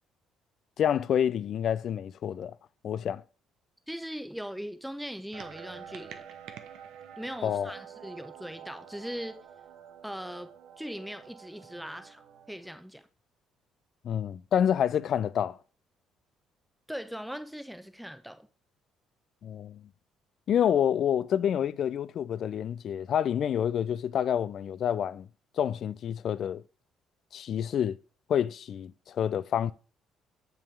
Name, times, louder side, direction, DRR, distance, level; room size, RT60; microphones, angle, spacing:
voice 1, 0.8-2.5 2.8-3.2 7.4-7.7 14.0-15.6 19.4-19.8 20.5-25.3 25.6-26.6 27.3-28.0 28.3-29.7, left 9 dB, 60° left, 0.4 m, -28 dB
voice 2, 3.9-6.2 7.2-9.4 10.0-10.5 10.8-12.2 12.5-13.1 16.9-18.5, equal, ahead, 0.8 m, -40 dB
sound 1, 5.3-12.8, right 8 dB, 75° right, 0.7 m, -48 dB
7.0 x 5.8 x 3.3 m
hypercardioid pair, 60°, 0 cm